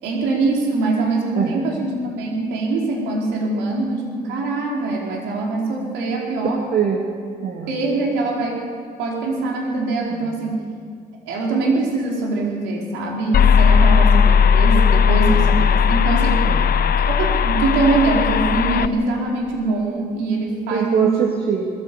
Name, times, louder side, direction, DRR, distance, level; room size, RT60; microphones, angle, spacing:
voice 1, 0.0-6.6 7.7-8.6 9.0-10.6 11.3-16.4 17.1-21.1, right 3 dB, 90° right, -2 dB, 4.5 m, -23 dB
voice 2, 6.5-7.0 7.4-7.7 10.1-10.3 13.1-13.3 15.3-15.5 16.5-16.7 20.7-21.7, right 7 dB, 55° right, 0 dB, 2.9 m, -23 dB
sound 1, 13.3-18.9, left 6 dB, 60° left, 0.8 m, -16 dB
20.5 x 15.0 x 8.5 m, 2.1 s
supercardioid pair, 60°, 18 cm